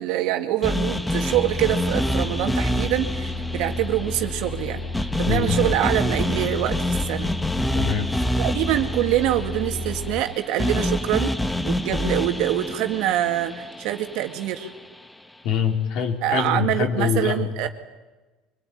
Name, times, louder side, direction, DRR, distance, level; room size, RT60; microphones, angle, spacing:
voice 1, 0.0-4.9 5.2-7.3 8.4-11.4 11.6-14.7 16.2-17.7, right 13 dB, 70° right, 6 dB, 2.1 m, -25 dB
sound 1, 0.6-14.8, left 1 dB, 10° left, 1.3 m, -27 dB
sound 2, 1.3-10.2, left 2 dB, 30° left, 2.7 m, -32 dB
voice 2, 5.2-5.6 7.7-8.1 15.4-17.7, left 7 dB, 65° left, 3 dB, 3.7 m, -24 dB
24.5 x 21.0 x 9.2 m, 1.2 s
supercardioid pair, 95°, 0 cm